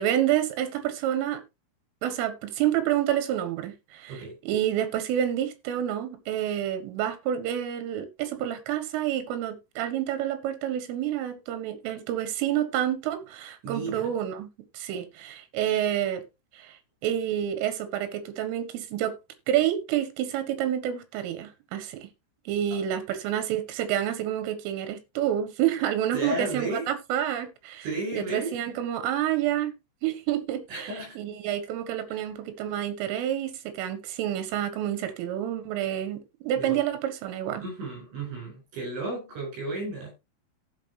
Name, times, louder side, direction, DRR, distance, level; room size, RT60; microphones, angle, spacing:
voice 1, 0.0-1.4 2.0-4.2 4.5-16.2 16.5-16.8 17.0-19.2 19.5-22.1 22.5-27.8 28.1-29.7 30.0-30.9 31.2-37.6, right 11 dB, 85° right, 4.0 m, -28 dB
voice 2, 13.6-14.1 26.1-26.9 27.8-28.5 30.7-31.2 32.1-32.2 36.6-36.8 37.6-40.1, right 2 dB, 70° right, 10.5 m, -33 dB
15.5 x 5.8 x 3.3 m
omnidirectional pair, 5.7 m